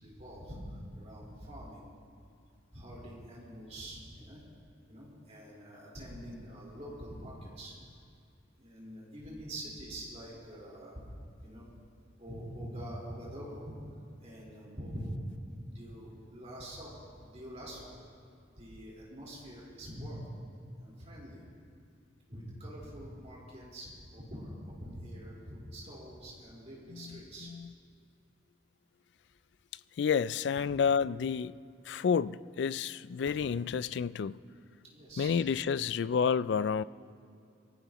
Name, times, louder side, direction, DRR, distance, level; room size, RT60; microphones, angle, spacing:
voice 1, 0.0-1.8 2.7-4.4 4.9-7.8 8.6-11.0 11.4-11.7 12.2-13.7 14.2-15.2 15.7-18.0 18.6-20.3 20.8-21.4 22.3-27.5 34.9-35.3, equal, 35° right, -5 dB, 4.3 m, -45 dB
voice 2, 26.9-27.7 30.0-31.6 31.8-34.4 35.2-36.8, left 6 dB, 65° left, 17 dB, 0.3 m, -30 dB
23.5 x 15.0 x 3.0 m, 2.5 s
head